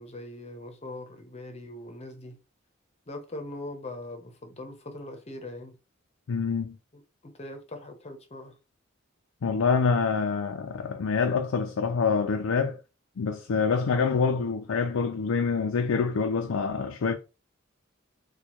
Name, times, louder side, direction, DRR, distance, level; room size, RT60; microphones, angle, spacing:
voice 1, 0.0-2.4 3.1-5.8 6.9-8.6, left 1 dB, 30° left, 0.7 m, -41 dB
voice 2, 6.3-6.8 9.4-12.8 13.2-17.1, left 5 dB, 80° left, 0.4 m, -26 dB
4.3 x 2.2 x 3.0 m
head